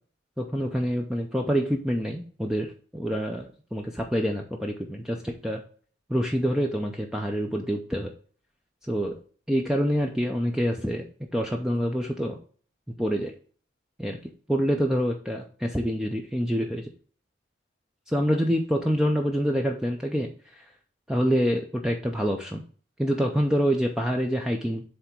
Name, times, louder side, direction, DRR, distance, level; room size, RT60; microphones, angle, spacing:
voice 1, 0.4-5.6 6.1-8.1 8.9-9.2 9.5-11.1 11.3-12.4 13.0-13.3 14.0-14.2 14.5-16.9 18.1-20.7 21.1-22.6 23.0-24.8, equal, 5° right, 1 dB, 0.6 m, -26 dB
7.8 x 3.5 x 4.4 m, 0.43 s
head